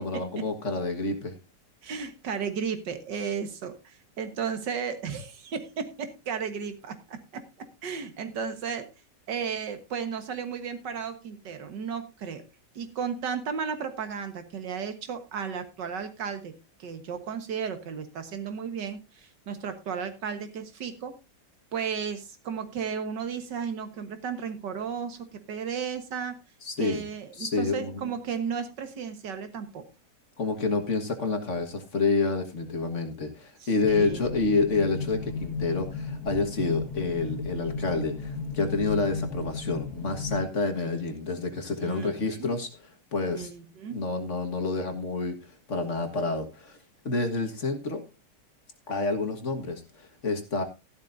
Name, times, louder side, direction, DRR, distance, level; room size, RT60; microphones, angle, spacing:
voice 1, 0.0-1.4 26.6-27.0 27.4-28.1 30.4-42.7 43.1-43.5 43.9-45.4 45.7-46.8 47.1-48.0 48.9-50.6, left 3 dB, 45° left, 6 dB, 1.8 m, -28 dB
voice 2, 1.8-8.9 9.3-12.4 12.8-21.1 21.7-26.4 26.8-29.9 33.6-34.2 41.8-42.5 43.3-44.0, right 6 dB, 80° right, 8 dB, 2.0 m, -34 dB
sound 1, 33.8-40.4, left 4 dB, 60° left, 2.4 m, -34 dB
13.5 x 11.5 x 2.6 m, 0.27 s
omnidirectional pair, 1.9 m